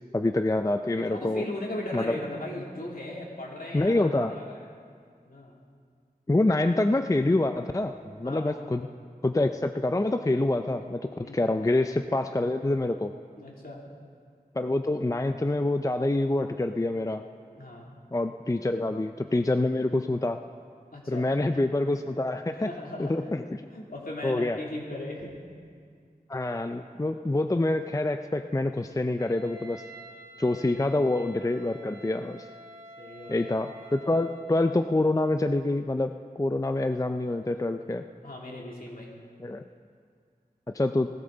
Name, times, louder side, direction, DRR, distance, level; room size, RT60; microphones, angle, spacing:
voice 1, 0.1-1.4 1.9-2.2 3.7-4.4 6.3-8.9 9.2-13.1 14.6-17.2 18.1-20.4 21.1-22.7 23.0-23.6 24.2-24.6 26.3-29.8 30.4-32.4 33.3-38.0 39.4-39.6 40.7-41.1, left 2 dB, 20° left, 7 dB, 0.4 m, -26 dB
voice 2, 1.1-4.1 4.4-4.7 5.3-5.5 8.2-8.6 11.2-11.4 13.4-13.8 17.5-17.9 20.9-21.5 22.6-23.3 23.7-25.3 30.6-30.8 33.0-33.5 38.2-39.1, left 1 dB, 65° left, -3 dB, 2.8 m, -38 dB
Wind instrument woodwind instrument, 29.2-34.5, right 1 dB, 20° right, 4.4 m, -48 dB
19.0 x 13.5 x 3.9 m, 2.1 s
wide cardioid pair, 55°, 16 cm